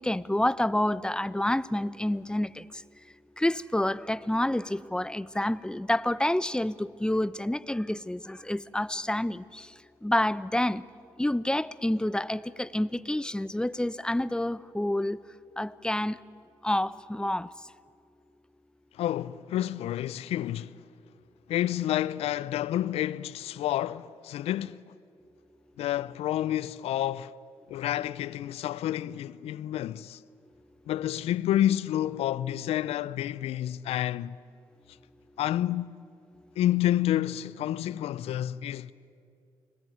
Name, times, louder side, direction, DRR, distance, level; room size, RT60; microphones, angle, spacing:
voice 1, 0.0-2.6 3.4-9.7 10.0-10.8 11.2-15.2 15.6-16.2 16.6-17.5, left 1 dB, 10° left, 0.9 m, -28 dB
voice 2, 18.9-20.8 21.5-24.8 25.8-27.3 27.7-30.2 30.9-34.4 35.4-36.0 36.6-38.9, left 12 dB, 75° left, 0.7 m, -29 dB
29.5 x 20.5 x 9.5 m
hypercardioid pair, 50°, 10 cm